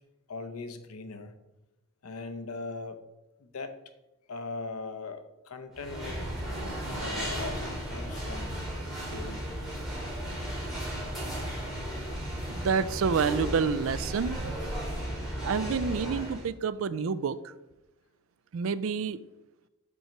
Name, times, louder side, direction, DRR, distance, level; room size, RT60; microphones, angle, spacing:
voice 1, 0.3-1.3 2.0-3.0 3.4-3.8 4.3-6.3 7.0-8.6 9.1-9.5, left 3 dB, 90° left, 9 dB, 0.7 m, -39 dB
sound 1, 5.7-16.5, equal, ahead, 2.2 m, -35 dB
voice 2, 12.5-14.5 15.4-17.4 18.5-19.2, right 5 dB, 70° right, 15 dB, 0.4 m, -28 dB
5.4 x 4.5 x 5.9 m, 0.99 s
head